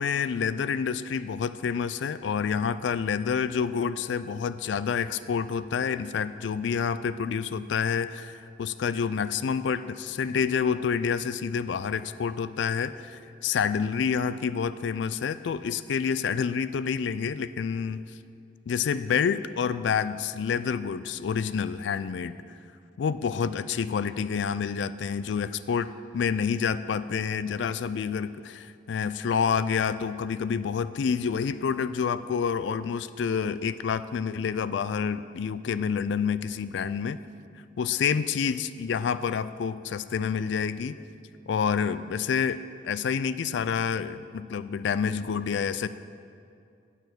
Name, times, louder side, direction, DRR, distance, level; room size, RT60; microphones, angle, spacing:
voice 1, 0.0-18.0 18.7-22.4 23.0-37.2 37.8-41.0 41.5-45.9, left 6 dB, 70° left, 14 dB, 0.3 m, -28 dB
9.0 x 7.4 x 6.0 m, 2.4 s
head